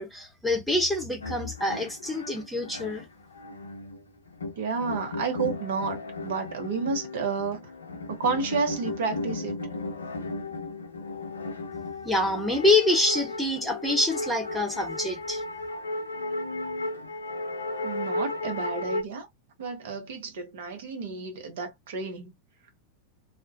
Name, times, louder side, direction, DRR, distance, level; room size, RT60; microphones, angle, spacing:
voice 1, 0.0-3.0 12.0-15.4, left 2 dB, ahead, 0.9 m, -26 dB
sound 1, 1.2-19.0, left 2 dB, 70° left, 0.5 m, -35 dB
voice 2, 4.6-7.7 8.1-9.6 17.8-19.3 19.6-22.3, right 4 dB, 55° right, 0.8 m, -31 dB
2.3 x 2.1 x 2.5 m
figure-of-eight pair, 90°, 0 cm